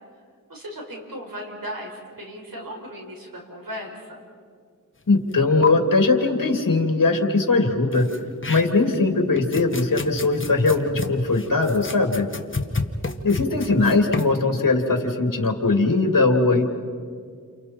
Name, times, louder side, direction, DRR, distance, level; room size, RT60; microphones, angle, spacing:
voice 1, 0.5-4.3, equal, 80° right, 0 dB, 5.4 m, -36 dB
voice 2, 5.1-8.1 8.5-12.3 13.2-16.6, left 3 dB, 70° left, 3 dB, 2.7 m, -20 dB
sound 1, 5.3-5.4 5.6-5.7 7.9-9.0 9.4-14.4, left 4 dB, 35° left, 1.4 m, -30 dB
30.0 x 29.5 x 4.5 m, 2.1 s
wide cardioid pair, 70°, 34 cm